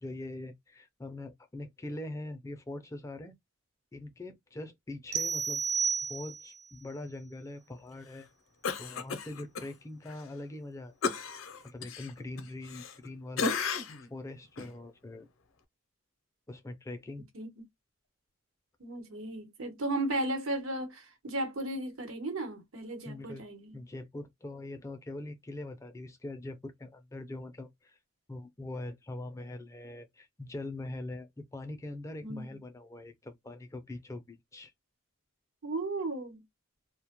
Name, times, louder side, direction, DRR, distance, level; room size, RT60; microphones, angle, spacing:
voice 1, 0.0-3.4 3.9-5.6 6.1-8.3 8.8-11.2 11.6-13.8 14.1-15.3 16.5-17.2 23.0-23.4 23.7-28.0 28.3-34.7, left 2 dB, 15° left, 0.3 m, -42 dB
sound 1, 5.1-6.7, right 6 dB, 50° right, 0.4 m, -31 dB
Cough, 8.6-9.7 10.1-10.2 11.0-13.1 13.4-14.1 14.6-14.7, left 5 dB, 75° left, 0.5 m, -34 dB
voice 2, 18.8-23.8 32.2-32.6 35.6-36.4, right 2 dB, 85° right, 1.0 m, -35 dB
2.1 x 2.1 x 2.8 m
head